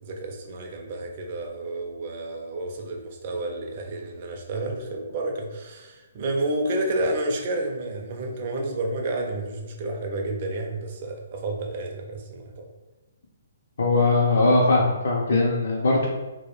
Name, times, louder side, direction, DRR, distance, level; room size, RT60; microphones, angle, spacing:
voice 1, 0.0-12.7, right 2 dB, 30° right, 1 dB, 0.4 m, -30 dB
voice 2, 13.8-16.1, left 2 dB, 65° left, -3 dB, 0.4 m, -20 dB
2.2 x 2.0 x 3.0 m, 1.1 s
hypercardioid pair, 170°, 0 cm